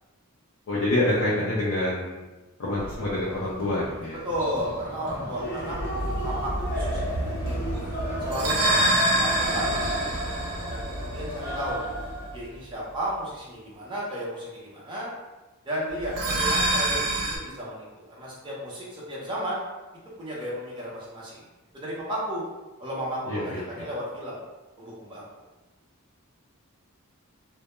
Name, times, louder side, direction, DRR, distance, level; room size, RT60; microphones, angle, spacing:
voice 1, 0.7-2.2 2.6-4.2 23.3-23.9, left 1 dB, 60° left, -6 dB, 0.5 m, -27 dB
sound 1, 2.8-12.3, equal, 40° left, 0.8 m, -34 dB
voice 2, 4.2-5.8 6.0-7.8 8.2-10.0 10.7-11.8 12.3-15.1 15.6-19.6 20.2-21.4 21.7-22.4 22.8-24.4 24.8-25.2, equal, 20° right, -6 dB, 0.6 m, -34 dB
sound 2, 5.7-12.3 16.0-17.4, right 1 dB, 90° right, 0.5 m, -27 dB
2.1 x 2.1 x 2.9 m, 1.1 s
head